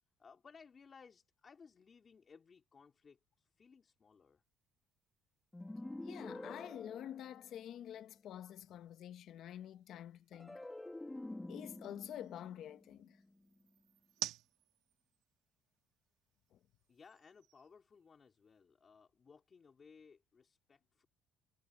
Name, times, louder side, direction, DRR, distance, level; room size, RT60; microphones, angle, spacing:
voice 1, 0.2-4.4 16.9-21.1, left 5 dB, 25° left, 4.5 m, -61 dB
sound 1, 4.4-18.6, right 15 dB, 80° right, 3.0 m, -54 dB
sound 2, 5.5-7.9 10.3-13.7, left 2 dB, 10° left, 1.7 m, -49 dB
voice 2, 6.0-10.6 11.5-13.2 16.5-16.6, left 10 dB, 55° left, 1.4 m, -48 dB
cardioid pair, 145°, 0 cm